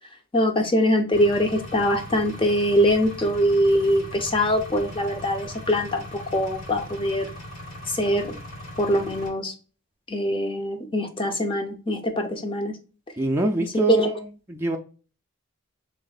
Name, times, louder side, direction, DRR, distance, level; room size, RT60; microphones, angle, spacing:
voice 1, 0.3-7.3 7.9-8.4 8.8-9.5 10.1-12.7 13.9-14.1, equal, 25° left, 0.7 m, -23 dB
Engine, 1.1-9.3, left 1 dB, 75° left, 2.2 m, -39 dB
voice 2, 13.2-14.8, right 2 dB, 10° right, 0.4 m, -24 dB
3.6 x 3.3 x 4.0 m
head